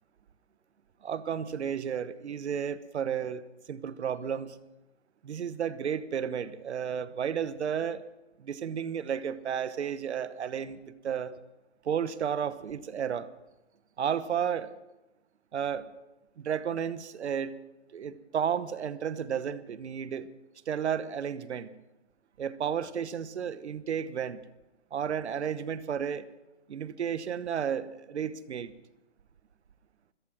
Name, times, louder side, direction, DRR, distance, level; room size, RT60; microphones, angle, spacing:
voice 1, 1.0-3.4 3.7-4.6 5.2-8.0 8.4-11.4 11.8-13.3 14.0-14.7 15.5-15.9 16.4-17.5 17.9-20.3 20.7-21.7 22.4-24.4 24.9-26.2 26.7-28.7, right 8 dB, 70° right, 15 dB, 1.1 m, -32 dB
15.5 x 14.0 x 6.1 m, 1.0 s
hypercardioid pair, 160°, 35 cm